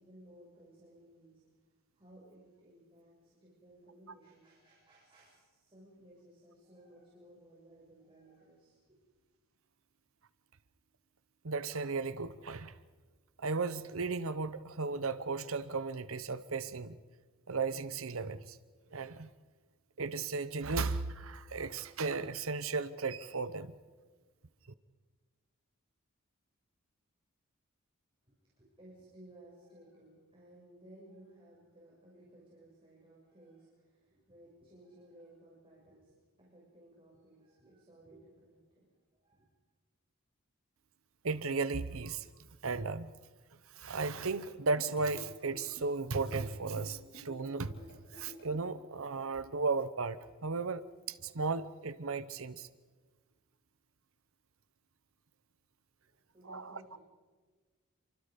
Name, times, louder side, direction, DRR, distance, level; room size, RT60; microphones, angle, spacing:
voice 1, 0.0-1.4 1.9-8.8 28.2-38.9 39.2-39.5 56.1-57.0, right 1 dB, 25° right, -5 dB, 6.9 m, -58 dB
voice 2, 11.4-12.7 13.4-17.0 17.5-18.6 18.9-19.3 20.0-23.7 41.2-42.3 42.6-43.1 43.7-47.8 48.1-50.8 51.1-52.7 56.5-56.8, right 4 dB, 70° right, 14 dB, 0.9 m, -35 dB
sound 1, 44.8-48.7, left 1 dB, 50° left, 5.2 m, -53 dB
29.0 x 25.0 x 5.3 m, 1.4 s
head